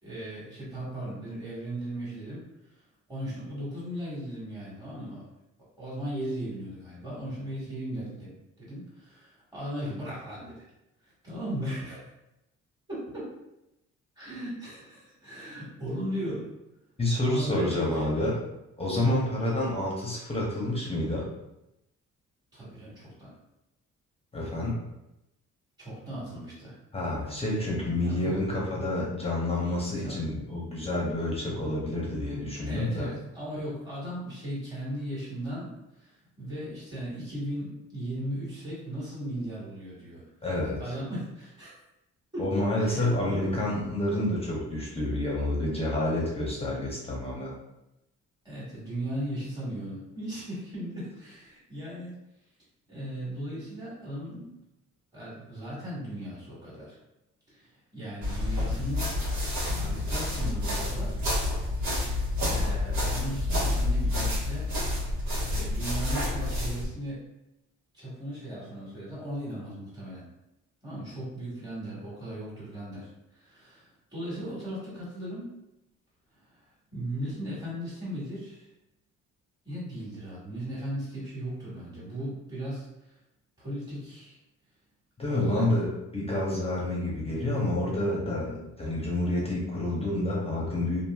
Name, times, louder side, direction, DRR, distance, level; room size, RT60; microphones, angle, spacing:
voice 1, 0.0-2.4 3.1-5.3 5.8-10.6 11.0-12.1 12.9-13.3 14.2-16.5 17.2-18.4 18.9-19.3 22.5-23.3 25.8-26.7 28.0-28.4 30.0-30.4 32.7-40.2 40.8-41.7 42.3-42.5 42.8-43.6 48.4-52.2 52.9-54.6 55.1-57.0 57.5-59.2 59.7-61.1 62.4-64.7 65.5-67.3 67.9-70.3 70.8-75.6 76.5-76.6 76.9-78.7 79.6-82.9 83.6-84.4 85.3-85.8 88.4-88.6, equal, 15° right, -8 dB, 1.4 m, -37 dB
voice 2, 17.0-18.4 18.8-21.3 24.3-24.8 26.9-33.1 40.4-40.9 42.4-47.5 85.2-88.5 88.8-91.1, left 1 dB, 20° left, -4 dB, 0.7 m, -29 dB
sound 1, 58.2-66.9, left 1 dB, 70° right, 1.2 m, -29 dB
2.8 x 2.6 x 2.3 m, 0.90 s
cardioid pair, 90°, 30 cm